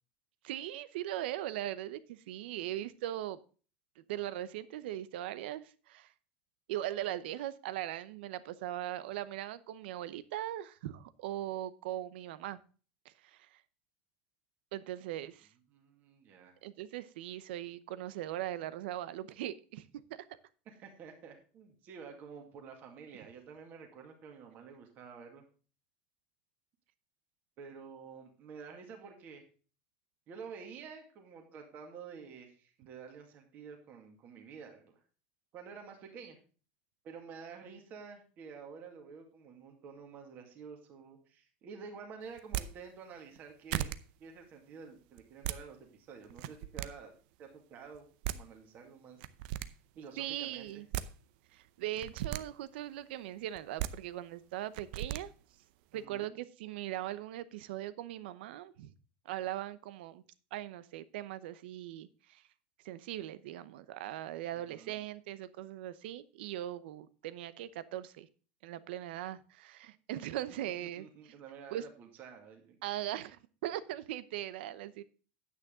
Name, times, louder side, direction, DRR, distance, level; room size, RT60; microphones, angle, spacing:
voice 1, 0.4-3.4 4.1-6.1 6.7-12.6 14.7-15.5 16.6-19.8 20.1-20.2 50.2-50.9 51.5-55.3 55.9-58.9 59.2-60.2 60.5-62.4 62.8-68.3 68.6-71.1 71.7-71.8 72.8-75.0, right 13 dB, 85° right, 16 dB, 0.8 m, -40 dB
voice 2, 15.7-16.5 20.8-25.4 27.6-29.4 30.3-34.9 35.5-36.4 37.0-43.9 44.2-47.1 47.4-48.1 48.3-49.2 49.9-50.8 55.9-56.4 64.5-65.0 70.5-70.6 70.8-72.8, right 6 dB, 35° right, 3 dB, 2.1 m, -50 dB
sound 1, 42.4-42.7 43.4-43.5 43.7-44.0 45.2-45.6 46.3-46.9 47.9-48.0 48.2-48.4 49.2-49.7 50.7-51.1 51.9-52.4 53.6-53.9 54.7-55.2, right 14 dB, 60° right, 0.6 m, -36 dB
9.6 x 8.6 x 3.7 m, 0.38 s
supercardioid pair, 170°, 5 cm